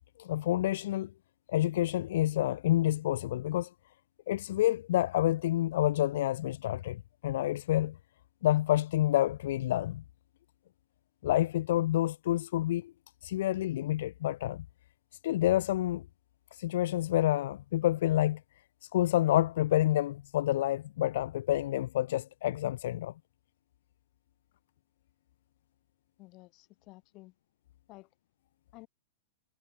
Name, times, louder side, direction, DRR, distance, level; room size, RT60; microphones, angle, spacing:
voice 1, 0.2-1.1 1.5-3.7 4.3-8.0 8.4-10.0 11.2-12.9 13.2-14.6 15.2-16.0 16.5-18.4 18.8-23.1, left 14 dB, 60° left, 0.6 m, -28 dB
voice 2, 26.2-27.3 27.9-28.1 28.7-28.9, left 21 dB, 30° left, 1.4 m, -52 dB
supercardioid pair, 165°, 0 cm